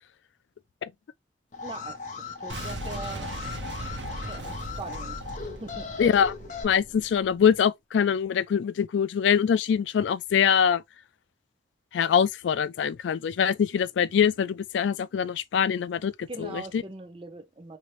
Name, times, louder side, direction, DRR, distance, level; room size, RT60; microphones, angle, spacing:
Alarm, 1.5-6.6, left 5 dB, 45° left, 0.7 m, -38 dB
voice 1, 1.6-2.0 2.4-3.3 4.3-5.2 5.6-5.9 16.3-17.8, right 3 dB, 30° right, 0.7 m, -40 dB
Boom, 2.5-7.4, right 1 dB, 80° right, 0.9 m, -38 dB
voice 2, 6.0-6.3 6.6-10.8 11.9-16.8, left 7 dB, 85° left, 0.3 m, -24 dB
2.9 x 2.8 x 3.1 m
head